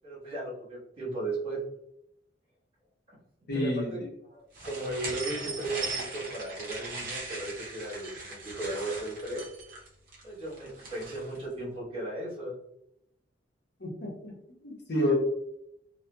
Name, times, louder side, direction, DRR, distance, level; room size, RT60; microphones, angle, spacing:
voice 1, 0.0-1.6 3.5-4.0 4.3-9.4 10.2-12.5, right 2 dB, 30° right, -7 dB, 1.5 m, -36 dB
voice 2, 3.5-4.0 13.8-14.3 14.6-15.1, left 1 dB, 60° left, -2 dB, 0.8 m, -29 dB
sound 1, 4.5-11.4, right 3 dB, 50° right, 0.8 m, -39 dB
2.7 x 2.3 x 2.2 m, 0.79 s
head